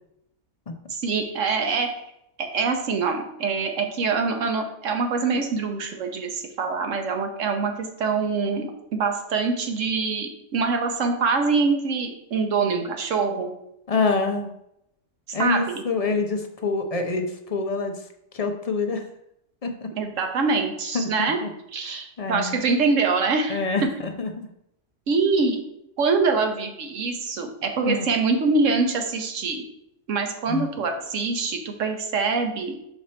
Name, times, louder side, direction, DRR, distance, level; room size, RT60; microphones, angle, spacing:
voice 1, 0.9-1.9 2.4-13.5 15.4-15.8 20.0-21.4 21.7-23.9 25.1-25.6 26.0-29.6 30.1-32.7, right 4 dB, 80° right, 5 dB, 1.2 m, -24 dB
voice 2, 13.9-14.5 15.3-18.1 18.3-19.1 19.6-19.9 20.9-21.5 21.9-22.6 23.5-24.5 27.9-28.1 30.5-30.7, left 3 dB, 45° left, 5 dB, 0.5 m, -26 dB
5.4 x 4.8 x 4.3 m, 0.79 s
omnidirectional pair, 1.3 m